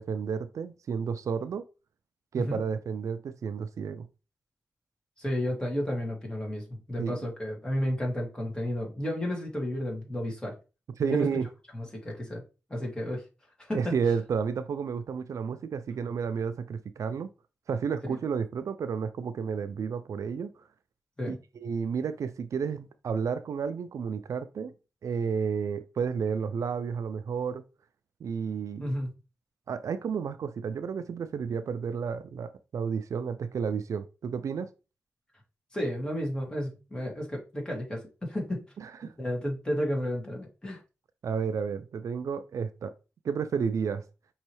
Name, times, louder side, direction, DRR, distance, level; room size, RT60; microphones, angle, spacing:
voice 1, 0.0-1.6 2.3-4.1 7.0-7.2 11.0-11.5 13.7-17.3 17.7-20.5 21.3-24.7 25.0-27.6 28.2-28.9 29.7-34.7 38.8-39.1 41.2-42.9 43.2-44.0, right 6 dB, 80° right, 0.4 m, -31 dB
voice 2, 2.3-2.7 5.2-10.5 11.0-11.3 11.7-12.4 12.7-13.2 13.6-13.9 18.1-18.2 21.2-21.4 28.8-29.1 35.7-38.6 39.2-40.8, equal, 15° left, 2.2 m, -32 dB
5.3 x 3.1 x 3.1 m
cardioid pair, 65°, 5 cm